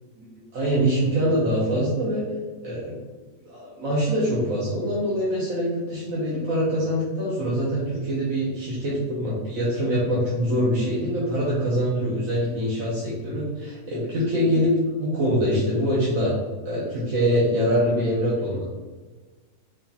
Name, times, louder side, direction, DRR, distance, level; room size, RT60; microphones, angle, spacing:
voice 1, 0.2-2.3 2.6-3.0 3.4-14.7 15.0-16.4 16.6-18.6, equal, 60° right, -7 dB, 1.3 m, -24 dB
4.9 x 2.5 x 4.1 m, 1.3 s
omnidirectional pair, 1.7 m